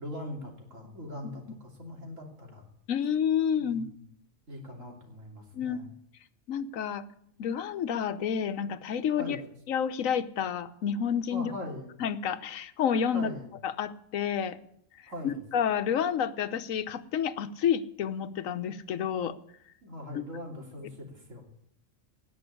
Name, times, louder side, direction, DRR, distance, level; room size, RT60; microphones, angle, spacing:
voice 1, 0.0-2.7 3.6-4.0 4.5-5.9 9.2-9.4 11.3-11.9 13.0-13.5 15.1-15.4 19.8-21.4, left 1 dB, 70° right, 1 dB, 3.5 m, -41 dB
voice 2, 2.9-3.9 5.5-5.8 6.5-7.0 7.4-9.4 9.7-11.5 12.0-13.3 13.6-14.6 15.2-19.4 20.1-20.2, left 8 dB, 85° left, 12 dB, 1.2 m, -29 dB
18.0 x 6.0 x 10.0 m, 0.70 s
omnidirectional pair, 1.4 m